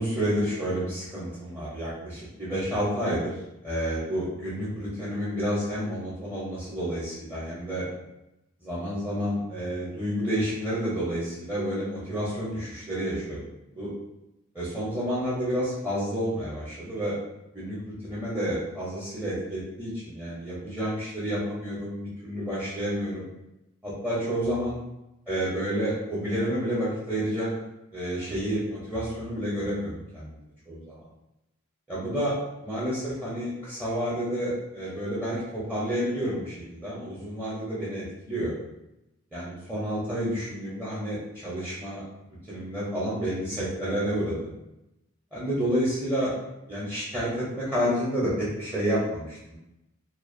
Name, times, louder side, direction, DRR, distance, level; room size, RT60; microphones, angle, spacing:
voice 1, 0.0-3.3 3.6-7.9 8.6-13.4 13.7-13.9 14.5-17.2 17.5-23.3 23.8-24.8 25.3-27.5 27.9-30.3 30.7-31.0 31.9-32.3 32.6-38.5 39.3-42.0 42.5-44.5 45.3-46.3 46.7-49.6, equal, 10° right, -9 dB, 0.5 m, -30 dB
2.4 x 2.2 x 2.5 m, 0.90 s
head